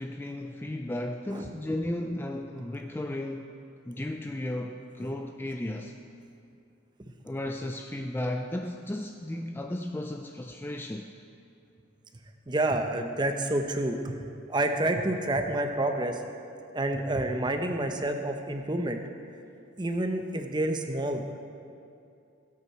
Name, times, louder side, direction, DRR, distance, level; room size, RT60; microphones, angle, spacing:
voice 1, 0.0-3.5 3.9-6.0 7.2-11.1, left 1 dB, 10° left, 4 dB, 0.3 m, -34 dB
voice 2, 12.5-14.2 14.5-16.2 16.7-19.0 19.8-21.2, right 1 dB, 20° right, 5 dB, 0.7 m, -28 dB
17.5 x 8.3 x 4.4 m, 2.5 s
head